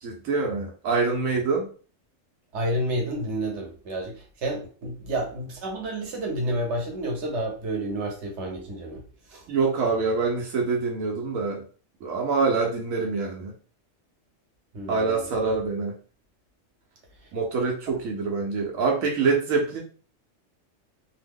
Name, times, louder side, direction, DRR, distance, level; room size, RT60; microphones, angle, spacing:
voice 1, 0.0-1.7 9.5-11.6 12.0-13.5 14.9-15.9 17.3-19.8, right 4 dB, 85° right, 0 dB, 1.1 m, -25 dB
voice 2, 2.5-9.0 9.3-9.4 14.7-15.4, right 1 dB, 60° right, 0 dB, 1.2 m, -30 dB
2.8 x 2.0 x 3.5 m, 0.39 s
omnidirectional pair, 1.4 m